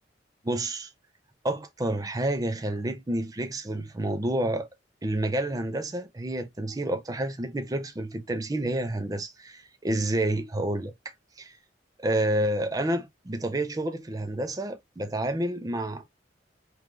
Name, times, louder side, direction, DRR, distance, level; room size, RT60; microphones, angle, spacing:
voice 1, 0.4-0.9 1.4-4.7 5.0-11.6 12.0-16.0, right 1 dB, 20° right, 0.5 m, -29 dB
3.1 x 2.4 x 3.7 m
head